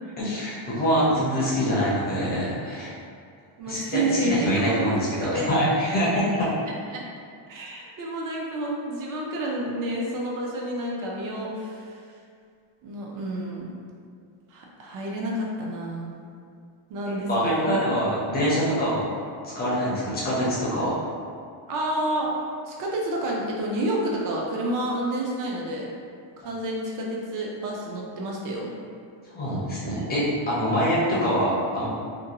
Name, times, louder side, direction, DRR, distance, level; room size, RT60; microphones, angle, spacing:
voice 1, 0.2-2.9 3.7-6.5 17.3-19.1 19.5-21.0 29.3-31.9, equal, 20° left, -8 dB, 0.4 m, -24 dB
voice 2, 3.6-4.9 5.2-5.5 6.1-6.2 6.9-7.0 7.5-12.0 12.8-13.7 14.5-16.1 16.9-17.7 21.7-22.3 22.6-25.9 26.4-28.7, right 1 dB, 45° right, -2 dB, 0.4 m, -29 dB
2.6 x 2.2 x 2.8 m, 2.2 s
cardioid pair, 165°, 49 cm